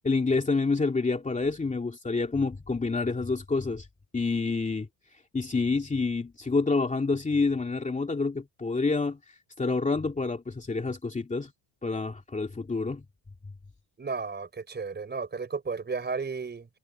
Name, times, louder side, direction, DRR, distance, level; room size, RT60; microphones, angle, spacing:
voice 1, 0.0-3.9 4.1-4.9 5.3-9.2 9.6-11.5 11.8-13.0, left 3 dB, 15° left, 2.6 m, -28 dB
voice 2, 14.0-16.7, right 4 dB, 20° right, 4.9 m, -33 dB
cardioid pair, 140°, 46 cm